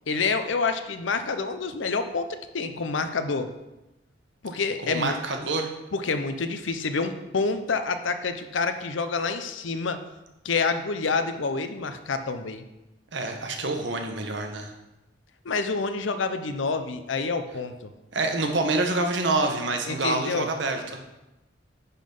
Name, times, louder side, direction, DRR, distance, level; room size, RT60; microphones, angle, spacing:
voice 1, 0.1-2.3 2.5-3.5 4.4-5.1 5.9-10.0 10.4-12.6 15.4-17.9 19.9-20.5, left 4 dB, 85° left, 9 dB, 0.7 m, -27 dB
voice 2, 4.8-5.7 13.1-14.7 18.1-21.0, right 2 dB, 70° right, 4 dB, 1.2 m, -27 dB
10.0 x 3.9 x 5.4 m, 0.98 s
head